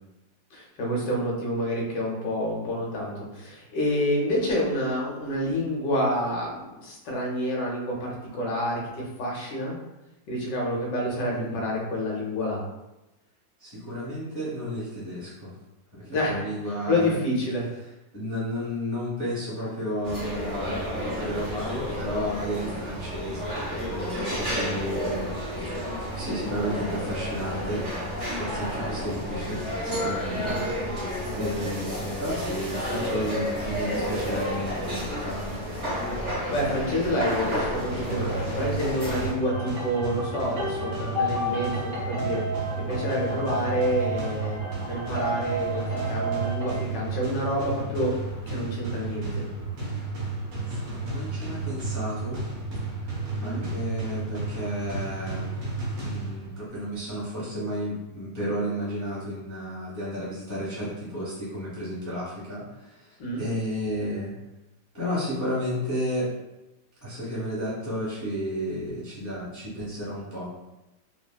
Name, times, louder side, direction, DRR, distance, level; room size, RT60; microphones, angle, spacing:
voice 1, 0.5-9.8 10.3-12.6 16.1-16.4 16.9-17.7 30.3-30.5 36.1-38.3 38.5-42.4 42.8-44.6 44.9-48.1 48.5-49.4 53.4-53.7 63.2-63.4, equal, 70° left, -3 dB, 1.3 m, -28 dB
voice 2, 11.3-11.6 13.6-15.5 15.9-17.2 18.1-23.5 23.8-25.3 25.6-35.9 50.7-52.4 53.4-55.5 56.0-64.3 64.9-66.3 67.0-70.6, equal, 20° left, -9 dB, 0.5 m, -33 dB
sound 1, 20.0-39.3, equal, 30° right, 1.0 m, -31 dB
sound 2, 37.7-56.7, right 3 dB, 80° right, 1.5 m, -33 dB
sound 3, 39.4-46.8, equal, 60° right, 0.5 m, -32 dB
3.9 x 2.0 x 2.2 m, 0.98 s
omnidirectional pair, 2.0 m